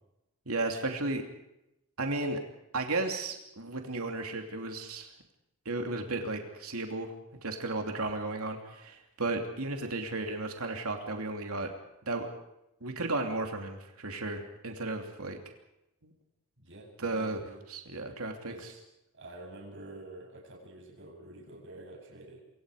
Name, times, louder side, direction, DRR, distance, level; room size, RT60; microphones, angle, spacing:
voice 1, 0.5-1.2 2.0-2.4 2.7-5.1 5.6-7.1 7.4-11.7 12.1-12.3 12.8-15.4 16.0-16.1 17.0-17.4 17.7-18.5, right 2 dB, 75° right, 3 dB, 2.9 m, -34 dB
voice 2, 16.6-17.6 18.5-18.8 19.1-22.4, right 2 dB, 55° right, 1 dB, 7.8 m, -48 dB
27.5 x 24.5 x 5.0 m, 0.87 s
head